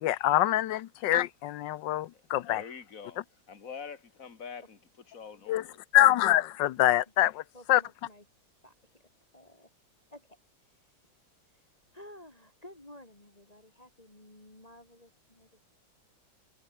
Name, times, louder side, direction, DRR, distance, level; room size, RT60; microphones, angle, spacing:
voice 1, 0.0-2.6 5.5-5.6 5.9-7.4 7.7-7.8, left 13 dB, 70° left, 1.3 m, -25 dB
voice 2, 2.1-4.8 5.1-5.8, left 6 dB, 40° left, 2.7 m, -45 dB
voice 3, 7.5-9.0 9.3-9.7 10.1-15.6, left 1 dB, 20° left, 3.7 m, -54 dB
omnidirectional pair, 2.2 m